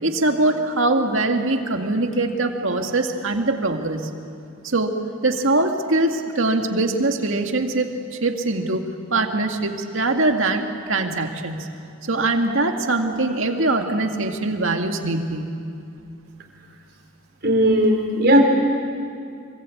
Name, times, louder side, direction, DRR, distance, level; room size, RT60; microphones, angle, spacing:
voice 1, 0.0-4.0 4.6-5.0 5.2-8.8 9.1-11.6 12.0-15.5, right 2 dB, 65° right, 4 dB, 2.1 m, -22 dB
voice 2, 17.4-18.4, equal, 50° right, 2 dB, 4.3 m, -16 dB
25.5 x 24.5 x 8.7 m, 2.4 s
head